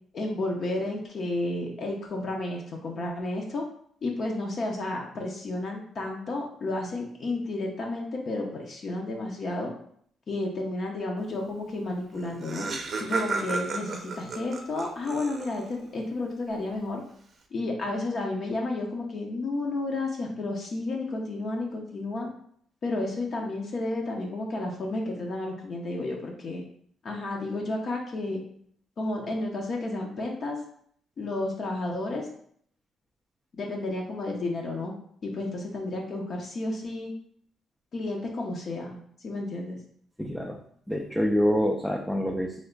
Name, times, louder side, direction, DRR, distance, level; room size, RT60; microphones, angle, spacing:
voice 1, 0.1-3.6 4.0-9.7 10.3-12.7 13.0-17.0 17.5-22.3 22.8-26.6 27.0-28.4 29.0-30.6 31.2-32.3 33.5-34.9 35.2-37.1 37.9-39.8, left 2 dB, 50° left, 0 dB, 0.7 m, -32 dB
Laughter, 11.9-12.0 12.1-15.8, right 3 dB, 50° right, 0.5 m, -33 dB
voice 2, 40.2-40.6 40.9-42.7, equal, 5° left, 1 dB, 0.4 m, -26 dB
3.2 x 2.1 x 3.8 m, 0.63 s
cardioid pair, 90°, 0 cm